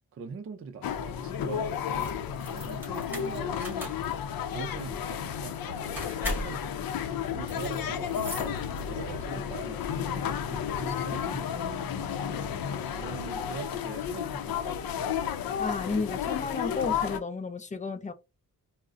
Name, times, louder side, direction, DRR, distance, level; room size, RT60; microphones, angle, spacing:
voice 1, 0.1-2.1 2.5-4.0 4.5-15.3, right 5 dB, 40° right, 0.4 m, -43 dB
sound 1, 0.8-17.2, left 8 dB, 75° left, 0.5 m, -32 dB
Door Int. Op Cl w keys, 1.9-9.2, equal, 5° right, 1.6 m, -40 dB
voice 2, 15.6-18.1, left 4 dB, 20° left, 0.4 m, -32 dB
3.6 x 2.1 x 2.4 m
wide cardioid pair, 115°, 36 cm